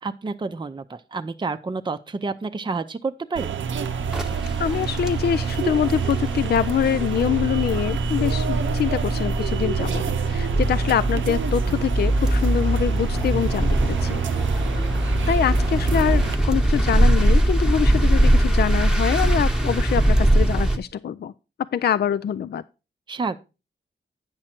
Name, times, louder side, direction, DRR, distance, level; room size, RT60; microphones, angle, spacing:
voice 1, 0.0-3.5 23.1-23.4, right 4 dB, 25° right, 0.6 m, -29 dB
sound 1, 3.4-16.4, right 6 dB, 85° right, 0.7 m, -27 dB
sound 2, 4.0-20.8, right 1 dB, 5° right, 1.0 m, -22 dB
voice 2, 4.6-14.2 15.3-21.3 21.7-22.6, left 9 dB, 60° left, 0.4 m, -24 dB
8.9 x 6.2 x 4.3 m
wide cardioid pair, 95°, 19 cm